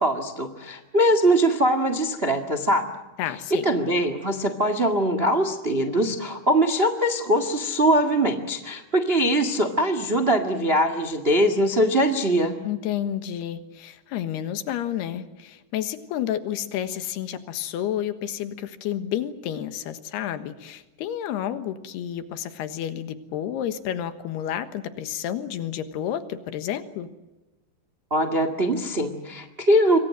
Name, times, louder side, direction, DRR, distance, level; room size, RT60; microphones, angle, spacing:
voice 1, 0.0-2.9 3.6-12.6 28.1-30.0, right 1 dB, 45° right, 10 dB, 0.7 m, -22 dB
voice 2, 3.2-3.7 12.6-27.1, left 10 dB, 80° left, 11 dB, 3.4 m, -30 dB
27.0 x 23.5 x 7.6 m, 1.1 s
omnidirectional pair, 4.7 m